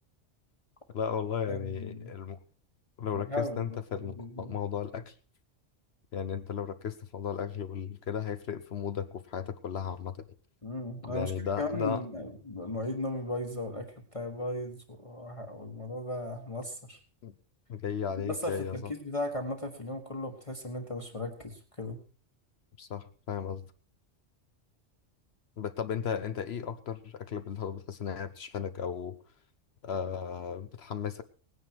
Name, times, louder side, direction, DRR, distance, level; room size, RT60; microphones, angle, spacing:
voice 1, 0.9-2.4 3.0-5.1 6.1-10.3 11.0-12.0 17.2-17.3 17.7-18.9 22.8-23.7 25.6-29.2 29.8-31.2, left 7 dB, 60° left, 11 dB, 1.0 m, -35 dB
voice 2, 1.5-2.1 3.1-4.5 10.6-13.9 14.1-17.0 18.2-22.0, left 1 dB, 25° left, 2 dB, 1.6 m, -36 dB
18.5 x 9.6 x 4.6 m, 0.39 s
omnidirectional pair, 1.2 m